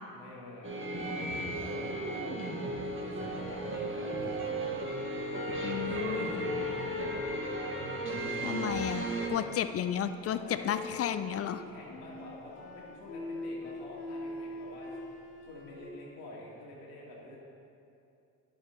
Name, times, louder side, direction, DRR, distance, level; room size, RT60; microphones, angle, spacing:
voice 1, 0.1-0.7 1.0-4.7 5.3-7.1 8.8-9.5 10.3-10.8 11.4-14.9 15.4-17.4, left 2 dB, 85° left, -4 dB, 1.9 m, -48 dB
sound 1, 0.6-9.3, right 1 dB, 25° right, 1.5 m, -36 dB
sound 2, 3.6-7.8 8.4-9.0 10.6-11.3 11.9-15.8, equal, 65° left, 1.5 m, -39 dB
voice 2, 5.6-6.4 8.4-11.6, left 9 dB, 35° left, 11 dB, 0.4 m, -33 dB
10.5 x 7.3 x 3.0 m, 2.7 s
hypercardioid pair, 65°, 45 cm